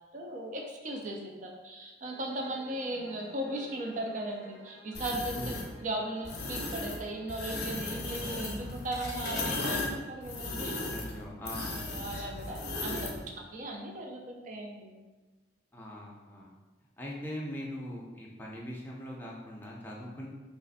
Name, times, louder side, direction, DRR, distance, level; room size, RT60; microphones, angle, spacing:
voice 1, 0.1-10.8 11.8-15.0, right 1 dB, 45° right, 1 dB, 0.4 m, -37 dB
sound 1, 2.0-8.2, right 1 dB, 80° right, 1.0 m, -53 dB
sound 2, 4.9-5.7 6.2-7.0 7.3-13.2, left 2 dB, 60° left, 0.6 m, -36 dB
voice 2, 10.9-11.8 15.7-16.5 17.0-20.3, equal, 10° left, -3 dB, 0.5 m, -41 dB
3.1 x 2.5 x 4.0 m, 1.2 s
head